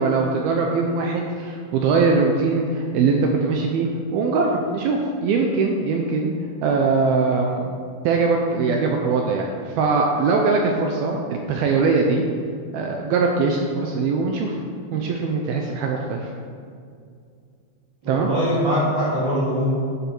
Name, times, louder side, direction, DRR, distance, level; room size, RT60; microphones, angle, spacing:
voice 1, 0.0-6.3 6.6-7.7 8.0-12.2 12.7-14.6 14.9-16.3 18.1-18.3, right 4 dB, 80° right, 1 dB, 2.2 m, -21 dB
voice 2, 18.0-19.7, equal, 35° right, -8 dB, 2.0 m, -22 dB
11.5 x 10.5 x 4.6 m, 2.3 s
omnidirectional pair, 5.3 m